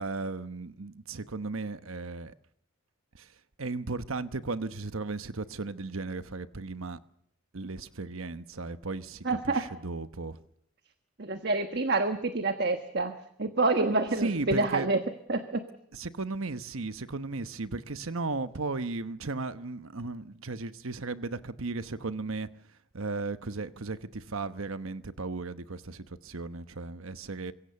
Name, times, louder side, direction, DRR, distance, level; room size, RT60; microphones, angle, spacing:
voice 1, 0.0-2.3 3.2-3.3 3.6-7.0 7.5-10.4 14.2-14.9 15.9-22.5 22.9-27.5, right 3 dB, 75° right, 1.1 m, -35 dB
voice 2, 9.2-9.6 11.2-15.0 15.3-15.6, right 3 dB, 50° right, 1.3 m, -27 dB
25.0 x 22.0 x 7.0 m
head